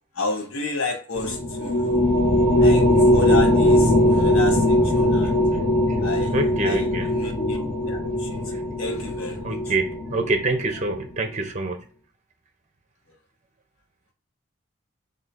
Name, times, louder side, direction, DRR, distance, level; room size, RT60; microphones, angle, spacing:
voice 1, 0.1-2.0 2.6-2.9 3.1-5.4 6.0-6.4 6.6-8.4 8.8-9.6, left 3 dB, 85° left, 1.0 m, -31 dB
sound 1, 1.1-10.9, left 1 dB, 35° left, 1.7 m, -20 dB
voice 2, 6.3-7.1 8.5-8.6 9.4-11.8, right 2 dB, 35° right, 0.6 m, -26 dB
3.3 x 2.7 x 4.1 m
head